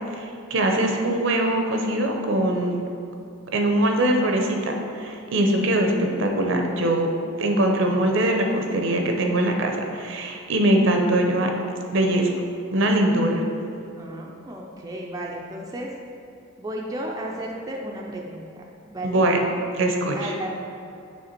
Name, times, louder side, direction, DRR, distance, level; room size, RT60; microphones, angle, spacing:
voice 1, 0.2-2.8 3.5-7.1 7.4-11.5 11.9-12.3 12.7-13.4 19.0-19.4 19.8-20.3, right 1 dB, 60° right, 3 dB, 0.6 m, -22 dB
voice 2, 13.9-15.9 16.6-19.2 20.1-20.5, right 1 dB, 15° right, -2 dB, 0.4 m, -34 dB
6.5 x 3.3 x 4.4 m, 2.6 s
head